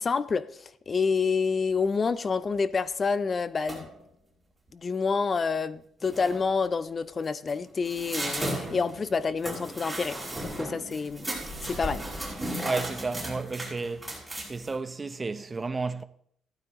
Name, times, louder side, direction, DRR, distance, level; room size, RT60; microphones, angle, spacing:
voice 1, 0.0-3.9 4.7-10.2 10.6-11.3 11.6-12.0, left 5 dB, 35° left, 0.5 m, -28 dB
sound 1, 3.7-4.0 5.6-5.7 6.0-6.5 7.2-14.7, right 1 dB, 10° right, 5.3 m, -35 dB
voice 2, 12.6-14.1 14.4-16.0, right 3 dB, 25° right, 0.7 m, -32 dB
14.5 x 12.0 x 3.0 m
cardioid pair, 95°, 0 cm